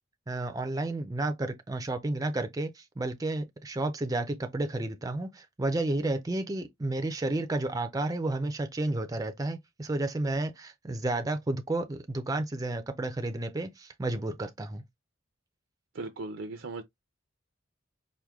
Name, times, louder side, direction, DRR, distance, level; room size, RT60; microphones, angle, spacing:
voice 1, 0.3-14.8, right 2 dB, 20° right, 0.4 m, -31 dB
voice 2, 15.9-16.8, right 3 dB, 75° right, 0.5 m, -37 dB
4.7 x 2.1 x 3.5 m
head